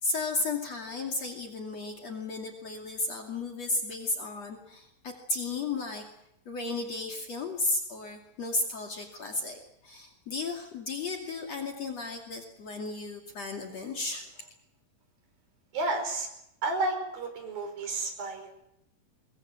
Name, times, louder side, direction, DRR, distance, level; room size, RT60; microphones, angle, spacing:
voice 1, 0.0-6.1 6.5-14.3, left 2 dB, 50° left, 2 dB, 3.4 m, -34 dB
voice 2, 15.7-16.3 16.6-18.6, right 2 dB, 90° right, 5 dB, 6.7 m, -31 dB
23.5 x 22.0 x 7.7 m, 0.80 s
omnidirectional pair, 4.0 m